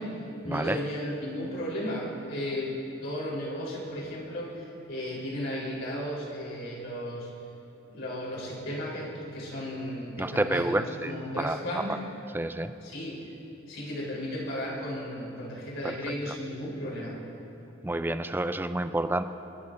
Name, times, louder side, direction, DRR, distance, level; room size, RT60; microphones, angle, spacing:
voice 1, 0.0-7.3 7.9-12.0 12.8-13.3 13.7-17.2, equal, 70° left, -5 dB, 3.9 m, -35 dB
voice 2, 10.2-11.1 11.4-11.8 12.3-12.7 15.8-16.0 17.8-19.2, right 1 dB, 10° right, 10 dB, 0.4 m, -29 dB
28.5 x 12.0 x 2.6 m, 3.0 s
head